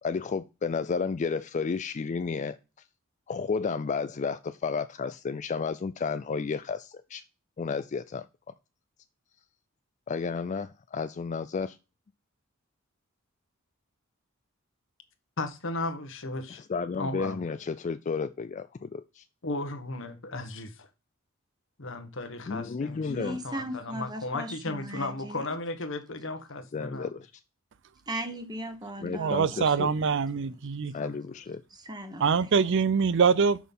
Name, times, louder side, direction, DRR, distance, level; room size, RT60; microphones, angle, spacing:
voice 1, 0.0-2.6 3.3-7.2 7.6-8.2 10.1-11.7 16.7-19.2 22.5-23.4 26.7-27.3 29.0-29.9 30.9-31.6, left 5 dB, 35° left, 0.4 m, -32 dB
voice 2, 15.4-16.6 17.0-17.5 19.4-20.9 21.8-27.1 29.1-29.2 31.0-31.1, left 2 dB, 65° left, 1.4 m, -35 dB
voice 3, 23.0-25.5 28.1-30.4 31.7-32.4, right 1 dB, 20° right, 1.3 m, -38 dB
voice 4, 29.2-30.9 32.2-33.6, right 5 dB, 60° right, 0.5 m, -24 dB
6.3 x 5.8 x 5.4 m
head